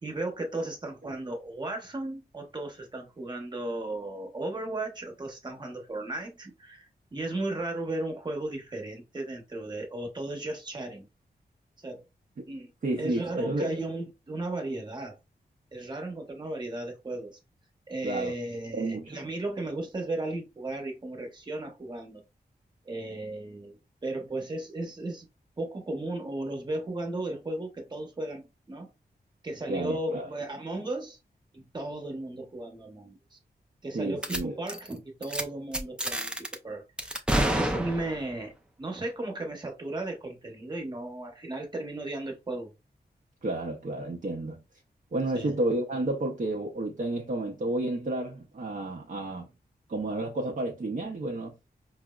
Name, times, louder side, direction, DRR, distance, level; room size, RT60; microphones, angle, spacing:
voice 1, 0.0-11.1 11.8-12.0 12.5-12.7 13.0-15.1 15.7-17.3 17.9-22.2 22.8-25.3 25.6-28.9 29.4-31.2 31.5-33.4 33.8-42.7 45.3-45.5, right 2 dB, 25° right, 1.0 m, -35 dB
voice 2, 12.8-13.8 18.0-18.3 18.7-19.2 29.7-30.3 33.9-34.6 43.4-44.6 45.1-49.5 49.9-51.5, right 2 dB, 50° right, 0.7 m, -31 dB
sound 1, 34.2-34.4 34.7-34.9 35.2-35.4 35.7-36.6 37.0-38.3, right 1 dB, 5° right, 0.4 m, -29 dB
4.7 x 2.0 x 2.3 m
wide cardioid pair, 105°, 17 cm